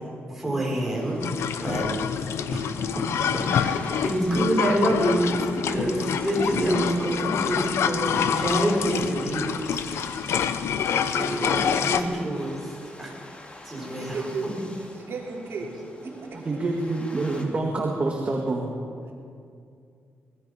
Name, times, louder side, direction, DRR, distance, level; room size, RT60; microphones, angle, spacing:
voice 1, 0.3-1.2 1.6-1.9 2.2-2.7 3.5-9.8 11.1-12.7 13.0-13.2 13.6-14.5, right 1 dB, 5° right, -4 dB, 6.4 m, -27 dB
sound 1, 0.6-17.5, left 1 dB, 25° left, 2.9 m, -46 dB
sound 2, 1.2-12.0, left 8 dB, 80° left, 1.0 m, -27 dB
voice 2, 13.8-14.7 14.9-16.4 19.0-19.1, right 4 dB, 60° right, -1 dB, 3.3 m, -35 dB
voice 3, 16.0-18.7, right 2 dB, 30° right, 0 dB, 2.2 m, -27 dB
24.5 x 20.0 x 5.7 m, 2.4 s
wide cardioid pair, 135°, 4 cm